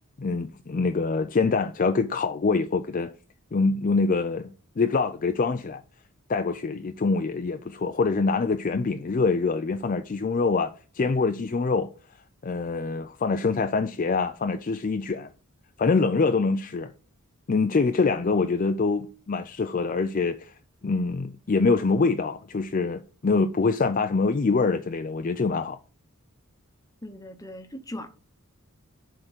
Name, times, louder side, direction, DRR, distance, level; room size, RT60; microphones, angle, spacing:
voice 1, 0.2-3.1 3.5-5.8 6.3-11.9 12.4-15.3 15.8-16.9 17.5-20.5 20.8-25.8, left 4 dB, 35° left, 0.4 m, -25 dB
voice 2, 27.0-28.1, left 1 dB, 15° left, 0.9 m, -39 dB
7.9 x 3.8 x 6.4 m
head